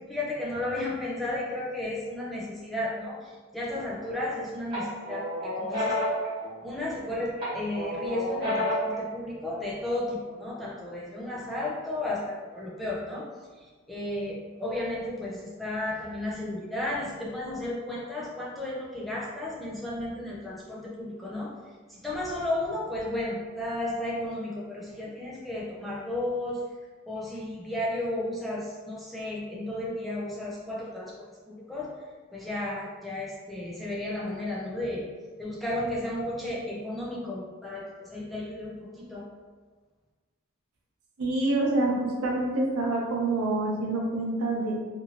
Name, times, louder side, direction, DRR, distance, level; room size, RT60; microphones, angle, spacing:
voice 1, 0.0-6.1 6.6-26.7 27.1-32.0 32.3-35.1 35.4-39.3, left 1 dB, ahead, -6 dB, 0.4 m, -33 dB
sound 1, 3.7-4.3 4.7-7.0 7.4-9.0, left 1 dB, 20° right, 0.9 m, -31 dB
voice 2, 41.2-44.9, right 2 dB, 90° right, -2 dB, 0.7 m, -27 dB
2.6 x 2.6 x 2.8 m, 1.4 s
head